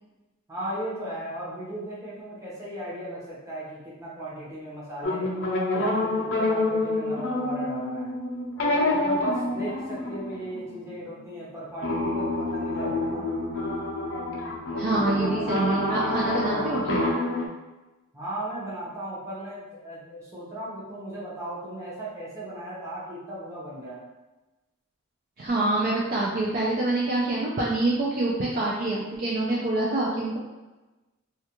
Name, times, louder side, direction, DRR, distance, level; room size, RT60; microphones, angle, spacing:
voice 1, 0.5-5.3 5.7-8.1 8.6-13.3 18.1-24.0, right 1 dB, 15° right, -8 dB, 0.7 m, -36 dB
sound 1, 5.0-11.0 11.8-17.5, left 2 dB, 65° left, 0.5 m, -27 dB
voice 2, 14.8-17.0 25.4-30.4, right 2 dB, 40° right, -5 dB, 0.3 m, -26 dB
2.3 x 2.2 x 2.9 m, 1.1 s
head